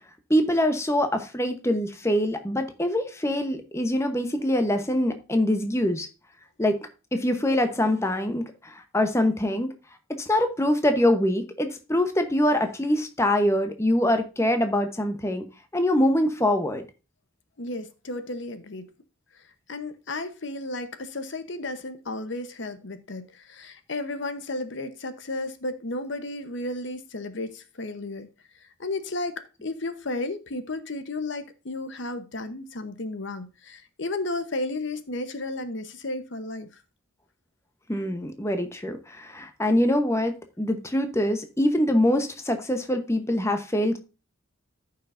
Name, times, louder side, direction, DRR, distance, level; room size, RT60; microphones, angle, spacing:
voice 1, 0.3-6.1 6.6-9.7 10.1-15.4 15.7-16.8 37.9-44.0, left 1 dB, 15° left, 0.9 m, -24 dB
voice 2, 17.6-18.9 19.7-28.3 28.8-36.8, left 2 dB, 55° left, 0.9 m, -33 dB
14.0 x 5.7 x 2.6 m
head